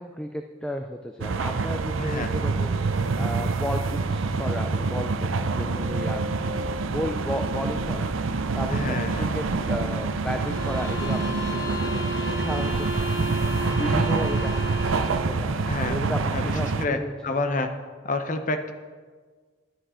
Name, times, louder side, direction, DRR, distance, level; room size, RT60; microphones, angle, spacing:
voice 1, 0.0-5.3 5.5-6.2 6.6-13.1 13.4-14.8 15.3-17.3, equal, 5° left, 5 dB, 0.4 m, -34 dB
sound 1, 1.2-16.9, right 3 dB, 80° right, 0.6 m, -26 dB
voice 2, 2.0-2.3 5.5-5.6 8.7-9.3 15.7-16.0 16.3-17.7 18.0-18.7, left 2 dB, 40° left, 7 dB, 0.7 m, -29 dB
sound 2, 10.4-15.3, equal, 60° left, 1.3 m, -33 dB
10.0 x 9.9 x 4.9 m, 1.5 s
head